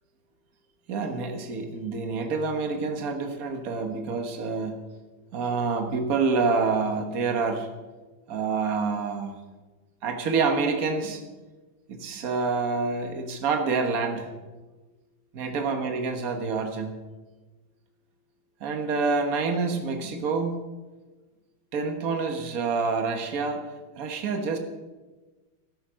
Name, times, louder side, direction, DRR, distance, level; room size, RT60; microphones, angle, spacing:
voice 1, 0.9-4.8 5.3-7.7 8.3-9.3 10.0-11.2 11.9-14.4 15.3-17.0 18.6-20.6 21.7-23.6 24.0-24.6, right 4 dB, 45° right, 5 dB, 1.7 m, -27 dB
13.5 x 10.5 x 6.3 m, 1.2 s
omnidirectional pair, 2.3 m